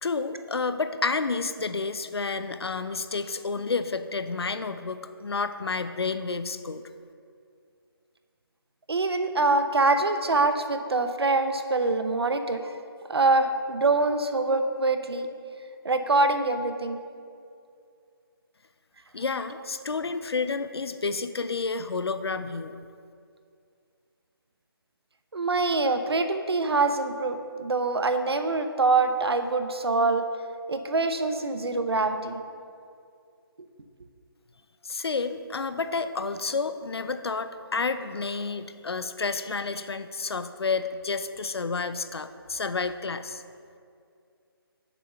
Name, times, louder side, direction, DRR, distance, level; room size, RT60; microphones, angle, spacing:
voice 1, 0.0-6.8 19.1-22.8 34.8-43.4, left 4 dB, 85° left, 11 dB, 0.6 m, -30 dB
voice 2, 8.9-12.7 13.1-15.3 15.8-17.0 25.3-30.3 30.7-32.4, right 3 dB, 85° right, 8 dB, 0.8 m, -24 dB
7.2 x 5.6 x 6.6 m, 2.4 s
figure-of-eight pair, 160°, 13 cm